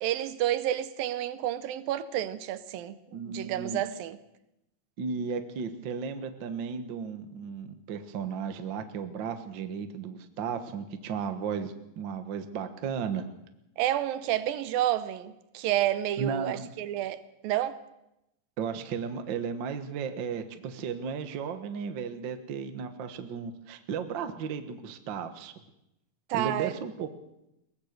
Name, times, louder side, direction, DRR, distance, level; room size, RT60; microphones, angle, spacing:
voice 1, 0.0-4.2 13.8-17.8 26.3-26.7, right 12 dB, 80° right, 2.6 m, -30 dB
voice 2, 3.1-3.8 5.0-13.2 16.2-16.7 18.6-25.5 26.3-27.1, right 6 dB, 65° right, 1.1 m, -34 dB
22.5 x 18.0 x 6.6 m
omnidirectional pair, 4.1 m